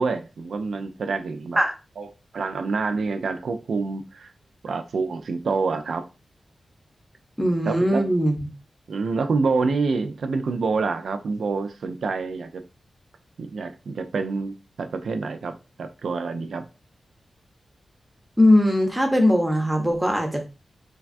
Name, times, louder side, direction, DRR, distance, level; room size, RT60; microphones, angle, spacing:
voice 1, 0.0-1.6 2.0-2.1 2.3-4.3 4.6-6.0 7.6-8.0 8.9-12.6 13.4-16.7, right 4 dB, 75° right, 0.3 m, -27 dB
voice 2, 7.4-8.4 18.4-20.4, left 1 dB, 10° right, 0.5 m, -20 dB
3.2 x 2.2 x 2.4 m
wide cardioid pair, 155°, 0 cm